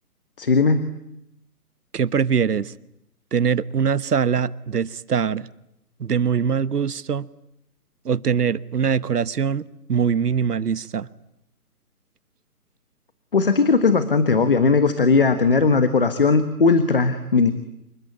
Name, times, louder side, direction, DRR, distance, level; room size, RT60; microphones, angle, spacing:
voice 1, 0.4-0.8 13.3-17.5, left 4 dB, 35° left, 1.4 m, -18 dB
voice 2, 1.9-2.7 3.3-5.5 6.0-7.3 8.0-11.1, right 7 dB, 80° right, 1.2 m, -22 dB
27.5 x 23.0 x 9.5 m
hypercardioid pair, 180°, 46 cm